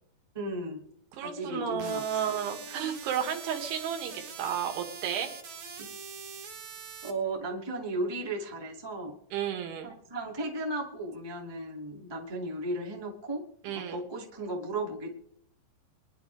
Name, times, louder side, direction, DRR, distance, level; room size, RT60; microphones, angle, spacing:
voice 1, 0.3-0.8 1.2-2.2 5.8-5.9 7.0-9.1 9.8-15.1, right 2 dB, 15° right, -2 dB, 0.9 m, -35 dB
voice 2, 1.1-5.3 9.3-10.0 13.6-14.0, right 8 dB, 75° right, 4 dB, 4.1 m, -32 dB
sound 1, 1.8-7.1, right 6 dB, 55° right, 2.3 m, -43 dB
22.5 x 11.5 x 3.5 m, 0.66 s
omnidirectional pair, 5.7 m